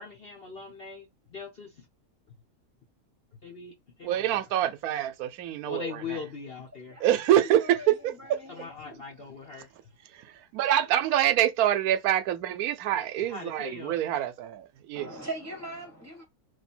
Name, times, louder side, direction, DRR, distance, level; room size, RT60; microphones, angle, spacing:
voice 1, 0.0-1.9 3.4-4.7 5.7-7.0 8.5-9.7 13.2-14.0, left 5 dB, 45° left, 1.0 m, -41 dB
voice 2, 4.0-6.0 7.0-8.4 10.1-10.2 10.5-15.1, right 11 dB, 85° right, 1.1 m, -26 dB
voice 3, 6.9-9.0 14.9-16.2, right 1 dB, 15° right, 0.8 m, -41 dB
3.2 x 2.7 x 4.2 m
omnidirectional pair, 1.5 m